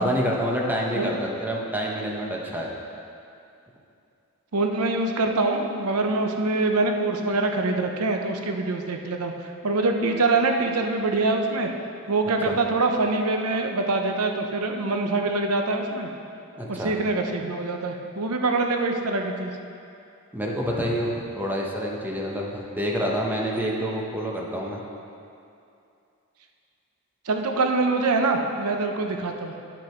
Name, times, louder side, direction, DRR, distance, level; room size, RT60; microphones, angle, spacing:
voice 1, 0.0-2.7 12.4-12.6 16.6-16.9 20.3-24.8, equal, 10° right, -2 dB, 1.0 m, -27 dB
voice 2, 4.5-11.7 12.1-16.1 16.7-19.5 27.2-29.5, right 3 dB, 85° right, 4 dB, 0.8 m, -24 dB
9.9 x 6.2 x 4.4 m, 2.6 s
head